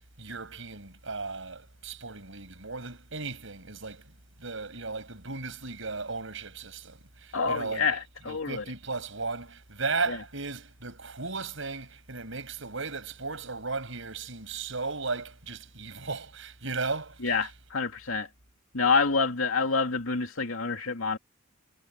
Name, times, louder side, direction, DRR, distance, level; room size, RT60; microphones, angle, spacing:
voice 1, 0.2-4.0 4.4-8.0 8.3-17.5, right 4 dB, 65° right, 6.5 m, -36 dB
voice 2, 7.3-8.6 10.1-10.2 17.2-18.3 18.7-21.2, left 4 dB, 80° left, 2.5 m, -27 dB
head